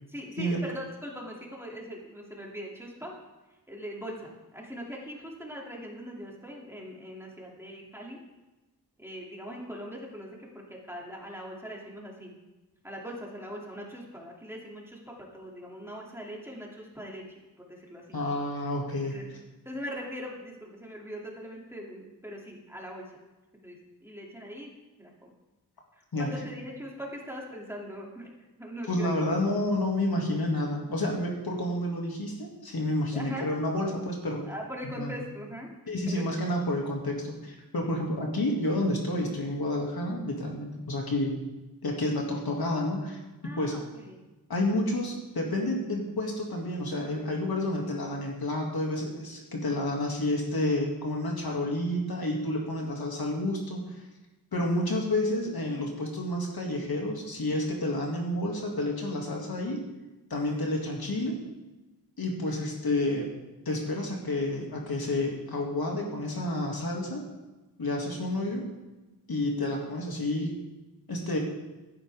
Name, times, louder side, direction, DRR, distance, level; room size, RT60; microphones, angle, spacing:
voice 1, 0.1-3.1 3.7-8.2 9.0-12.3 12.8-18.2 19.0-19.2 19.6-23.1 23.6-24.7 25.0-25.3 25.9-28.3 28.6-29.1 33.1-33.5 34.5-35.7 36.1-36.3 43.4-44.2, equal, 5° right, -2 dB, 2.8 m, -41 dB
voice 2, 18.1-19.2 26.1-26.3 28.9-34.4 34.9-35.1 35.9-41.4 41.8-43.2 43.6-43.8 44.5-53.8 54.5-59.8 60.3-61.4 62.2-63.3 63.7-67.2 67.8-68.6 69.3-70.5 71.1-71.4, left 1 dB, 65° left, -1 dB, 2.5 m, -30 dB
15.5 x 11.5 x 3.6 m, 1.1 s
wide cardioid pair, 95°, 39 cm